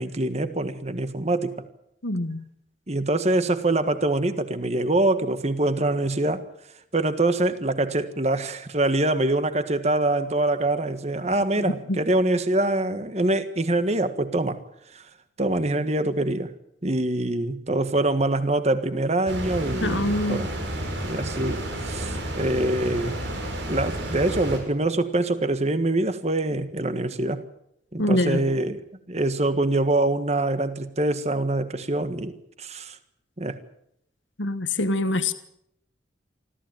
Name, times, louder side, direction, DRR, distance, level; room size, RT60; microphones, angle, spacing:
voice 1, 0.0-1.6 2.9-6.4 6.9-14.6 14.9-15.0 15.4-16.5 16.8-20.5 21.0-23.2 23.7-27.4 27.9-28.8 29.1-33.0 33.4-33.6, right 2 dB, 35° right, 11 dB, 1.6 m, -24 dB
voice 2, 2.0-2.4 11.9-12.0 19.8-20.5 28.0-28.4 34.4-35.3, left 1 dB, 85° left, 11 dB, 1.4 m, -24 dB
sound 1, 19.3-24.6, right 1 dB, 80° right, 6.7 m, -31 dB
24.5 x 15.0 x 9.1 m, 0.78 s
head